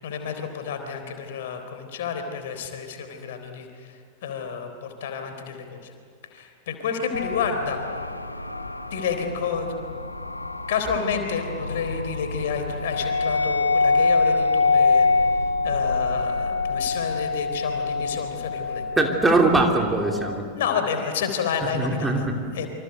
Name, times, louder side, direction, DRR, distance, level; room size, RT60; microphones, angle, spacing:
voice 1, 0.0-5.9 6.3-7.9 8.9-9.7 10.7-18.8 20.5-22.7, left 6 dB, 55° left, 7 dB, 3.8 m, -30 dB
sound 1, 7.1-20.4, left 3 dB, 85° left, 1.3 m, -25 dB
voice 2, 19.0-20.4 21.7-22.2, right 2 dB, 10° right, 2 dB, 2.9 m, -21 dB
27.5 x 26.0 x 8.1 m, 2.2 s
figure-of-eight pair, 90°, 0 cm